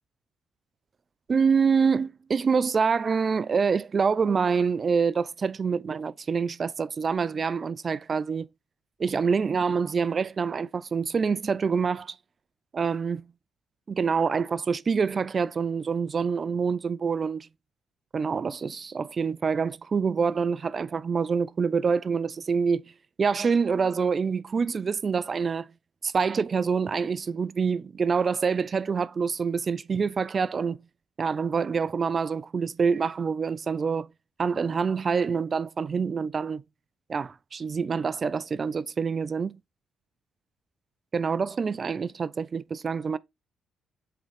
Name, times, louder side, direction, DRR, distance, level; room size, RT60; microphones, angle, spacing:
voice 1, 1.3-8.5 9.0-12.2 12.7-13.2 13.9-17.5 18.1-22.8 23.2-25.7 26.0-30.8 31.2-34.1 34.4-36.6 37.1-39.6 41.1-43.2, right 5 dB, 40° right, 0.3 m, -26 dB
7.9 x 3.7 x 3.4 m
cardioid pair, 90°, 0 cm